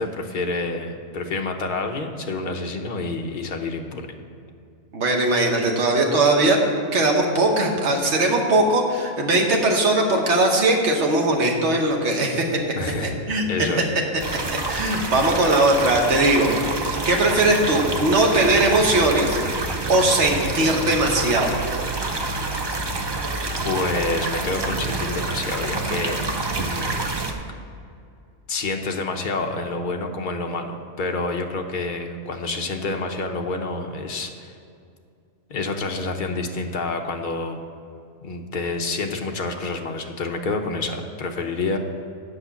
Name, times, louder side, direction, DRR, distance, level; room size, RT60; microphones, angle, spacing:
voice 1, 0.0-4.1 12.8-13.1 13.5-13.9 23.6-26.2 26.5-27.1 28.5-34.5 35.5-37.6 38.2-41.8, left 3 dB, 45° left, 4 dB, 0.8 m, -28 dB
voice 2, 4.9-6.6 6.9-12.4 13.3-13.4 14.5-16.6 16.9-19.4 19.9-21.6, right 2 dB, 60° right, 1 dB, 1.4 m, -19 dB
sound 1, 14.2-27.3, right 2 dB, 40° right, 0.3 m, -27 dB
8.2 x 5.7 x 7.0 m, 2.4 s
omnidirectional pair, 1.4 m